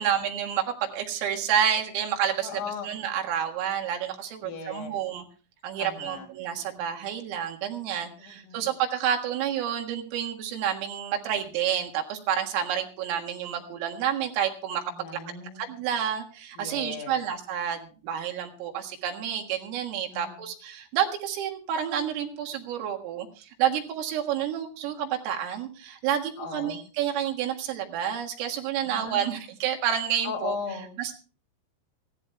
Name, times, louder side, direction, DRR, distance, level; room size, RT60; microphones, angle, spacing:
voice 1, 0.0-5.2 5.6-14.8 15.6-30.6 31.0-31.1, right 9 dB, 90° right, 2 dB, 4.4 m, -29 dB
voice 2, 2.4-2.9 4.4-5.0 5.8-6.3 8.2-8.6 14.9-15.8 16.6-17.2 20.1-20.4 26.4-26.8 28.8-29.4 30.2-30.9, left 5 dB, 85° left, 0 dB, 5.7 m, -37 dB
23.5 x 16.0 x 2.3 m, 0.36 s
omnidirectional pair, 5.8 m